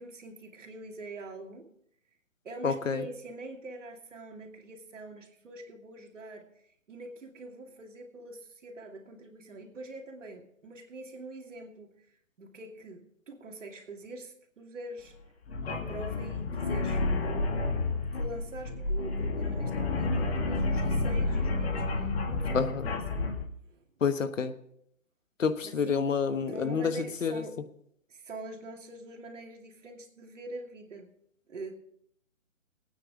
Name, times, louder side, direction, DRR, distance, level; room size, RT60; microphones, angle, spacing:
voice 1, 0.0-1.7 2.4-11.9 12.4-15.1 15.6-17.5 18.1-23.2 23.7-23.8 25.6-26.0 26.5-27.6 28.1-31.1 31.5-31.8, right 2 dB, 65° right, 3 dB, 2.6 m, -44 dB
voice 2, 2.6-3.0 22.5-22.9 24.0-24.5 25.4-27.4, left 6 dB, 70° left, 11 dB, 1.3 m, -28 dB
sound 1, 15.5-23.5, left 2 dB, 50° left, 2.2 m, -30 dB
20.5 x 9.2 x 3.6 m, 0.70 s
hypercardioid pair, 145°, 40 cm